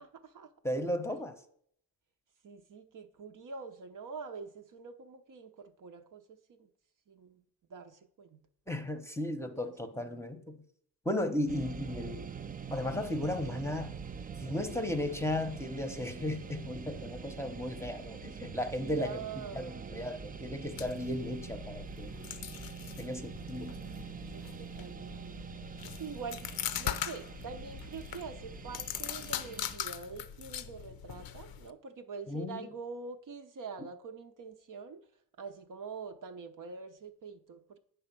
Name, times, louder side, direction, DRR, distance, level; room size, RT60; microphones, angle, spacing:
voice 1, 0.0-0.5 1.1-1.2 2.4-6.7 7.1-7.4 7.7-8.5 9.4-10.2 18.8-20.5 24.3-25.5 26.0-26.5 26.8-35.0 35.4-37.8, right 5 dB, 55° right, 0.7 m, -45 dB
voice 2, 0.6-1.4 8.7-10.6 11.0-12.3 12.7-13.9 14.4-19.2 19.5-22.1 23.0-23.7 32.3-32.6, left 1 dB, 5° left, 0.8 m, -35 dB
sound 1, 11.5-29.8, right 6 dB, 25° right, 0.3 m, -45 dB
sound 2, 20.6-31.7, left 10 dB, 65° left, 0.6 m, -41 dB
8.4 x 3.4 x 6.0 m
cardioid pair, 70°, 39 cm